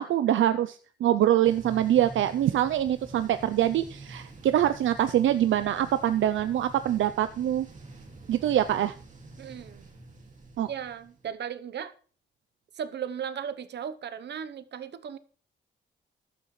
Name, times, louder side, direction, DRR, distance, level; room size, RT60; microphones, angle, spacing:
voice 1, 0.0-7.7 8.3-8.9 10.6-10.7, right 11 dB, 80° right, 12 dB, 0.5 m, -24 dB
sound 1, 1.4-11.3, right 2 dB, 40° right, 2.2 m, -47 dB
voice 2, 9.4-9.9 10.7-11.9 12.8-15.2, right 8 dB, 60° right, 14 dB, 0.9 m, -36 dB
14.5 x 12.0 x 3.2 m, 0.42 s
wide cardioid pair, 145°, 20 cm